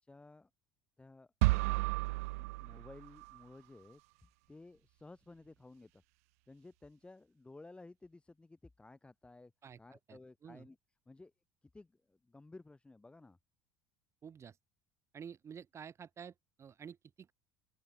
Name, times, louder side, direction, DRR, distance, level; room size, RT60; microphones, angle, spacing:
voice 1, 0.0-0.5 1.0-1.9 2.4-6.0 6.5-9.5 9.8-10.8 11.0-11.3 11.6-13.4, left 2 dB, 15° left, 3.5 m, -56 dB
sound 1, 1.4-3.4, right 24 dB, 80° right, 0.5 m, -33 dB
voice 2, 10.1-10.7 14.2-14.6 15.1-17.3, right 7 dB, 35° right, 5.5 m, -50 dB
open air
supercardioid pair, 85°, 8 cm